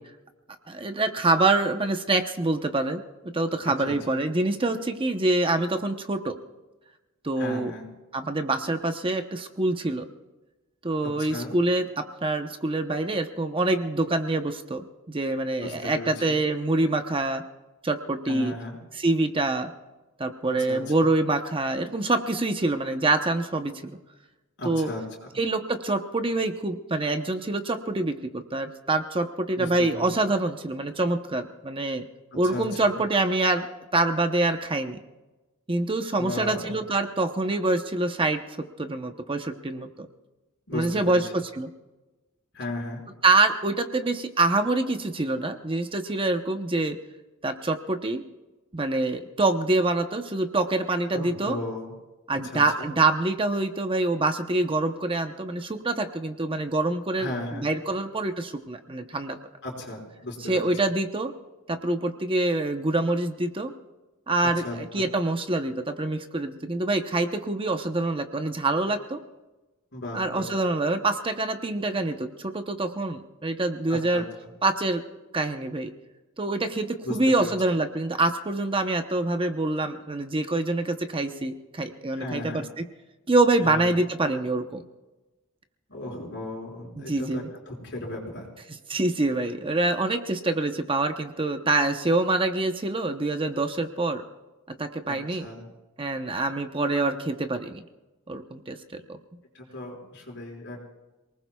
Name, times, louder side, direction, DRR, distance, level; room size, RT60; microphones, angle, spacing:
voice 1, 0.7-3.0 3.3-6.4 7.2-7.7 8.1-10.1 10.8-17.4 17.8-18.6 19.0-19.7 20.2-23.9 24.6-24.9 25.4-32.0 32.4-33.7 33.9-35.0 35.7-40.1 40.7-41.7 43.2-47.0 47.4-48.2 48.7-51.6 52.3-59.4 60.5-61.3 61.7-63.7 64.3-69.2 70.1-74.2 74.6-75.0 75.3-75.9 76.4-82.8 83.3-84.8 87.0-87.5 88.9-94.2 94.8-95.5 96.0-97.8 98.3-99.2, right 2 dB, 25° right, 7 dB, 0.8 m, -26 dB
voice 2, 3.8-4.2 7.4-7.9 11.0-11.5 15.6-16.4 18.3-18.8 20.5-21.1 24.6-25.3 29.5-30.0 32.3-33.0 36.1-36.8 40.7-41.2 42.5-43.0 51.1-52.0 52.4-52.9 57.2-57.7 59.6-60.7 64.4-65.1 69.9-70.5 73.9-74.2 77.0-77.5 82.2-82.7 83.6-84.0 85.9-88.5 95.1-95.7 99.5-100.8, left 2 dB, 55° left, -1 dB, 5.3 m, -36 dB
27.5 x 19.5 x 2.3 m, 1.1 s
head